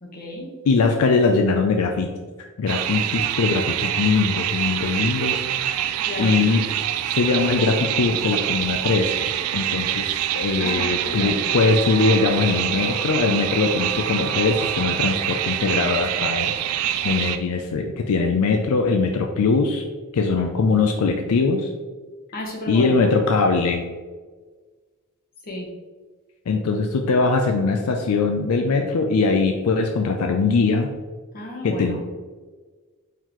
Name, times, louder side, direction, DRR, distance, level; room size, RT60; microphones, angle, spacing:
voice 1, 0.0-0.5 6.0-6.4 10.6-11.6 22.3-23.1 25.4-25.7 31.3-32.0, left 1 dB, 40° left, -2 dB, 1.1 m, -32 dB
voice 2, 0.7-2.1 2.6-5.4 6.2-6.7 7.1-19.8 20.1-21.7 22.7-23.8 26.5-30.9 31.6-32.0, left 4 dB, 80° left, 4 dB, 0.4 m, -21 dB
sound 1, 2.7-17.4, right 11 dB, 80° right, 0.3 m, -25 dB
4.5 x 3.7 x 3.0 m, 1.4 s
head